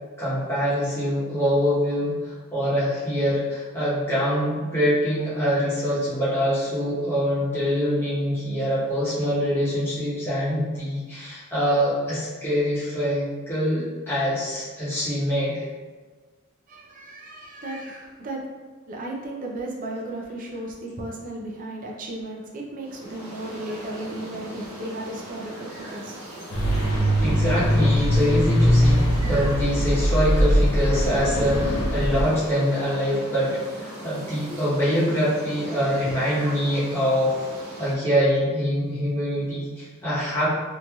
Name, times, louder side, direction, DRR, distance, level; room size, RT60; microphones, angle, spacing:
voice 1, 0.2-15.6 27.2-37.5 37.8-40.5, equal, 10° left, -10 dB, 0.9 m, -24 dB
voice 2, 16.7-18.4 18.9-26.2 34.4-34.6 35.7-36.1, right 1 dB, 40° right, -2 dB, 0.4 m, -35 dB
sound 1, 22.8-38.0, right 1 dB, 75° right, 0.9 m, -39 dB
sound 2, 26.5-32.2, equal, 85° left, 0.6 m, -21 dB
3.0 x 2.6 x 2.3 m, 1.4 s
head